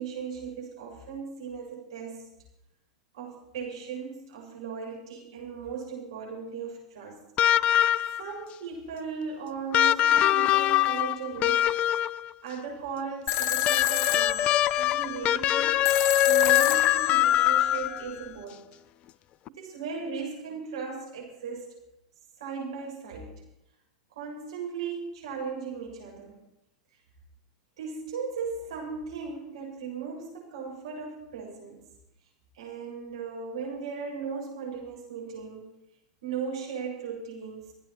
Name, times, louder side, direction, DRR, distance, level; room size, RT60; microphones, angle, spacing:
voice 1, 0.0-2.3 3.1-7.2 8.2-11.7 12.4-15.8 16.2-18.7 19.5-21.7 22.4-23.4 24.1-26.4 27.8-31.8 32.5-35.7 36.2-37.7, right 5 dB, 70° right, 0 dB, 7.5 m, -37 dB
sound 1, 7.4-8.3 9.7-12.3 13.6-18.1 19.5-19.6, left 12 dB, 40° left, 0.5 m, -23 dB
sound 2, 13.3-18.3, left 13 dB, 55° left, 0.9 m, -29 dB
27.0 x 9.2 x 4.6 m, 0.84 s
hypercardioid pair, 95°, 3 cm